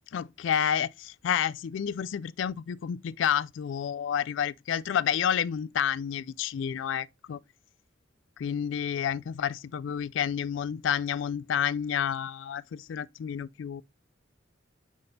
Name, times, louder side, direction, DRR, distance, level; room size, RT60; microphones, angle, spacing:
voice 1, 0.1-7.4 8.4-13.8, left 8 dB, 70° left, 0.3 m, -30 dB
7.7 x 5.3 x 2.7 m
head